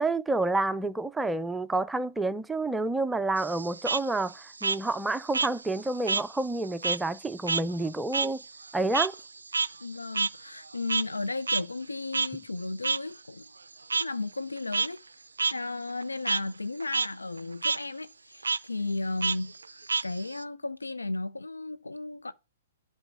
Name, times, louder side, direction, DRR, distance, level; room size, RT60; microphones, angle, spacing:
voice 1, 0.0-8.4 8.7-9.2, right 2 dB, 5° right, 0.4 m, -29 dB
Frog, 3.4-6.3 6.6-11.2 11.5-11.6 12.1-12.3 12.8-13.0 13.9-14.0 14.6-14.9 15.4-15.5 15.9-16.4 16.8-17.1 17.4-17.8 18.4-18.6 19.2-20.4, right 4 dB, 80° right, 0.3 m, -29 dB
voice 2, 9.8-13.5 13.9-15.0 15.5-22.3, left 3 dB, 90° left, 0.4 m, -34 dB
8.0 x 4.2 x 5.6 m
figure-of-eight pair, 120°, 0 cm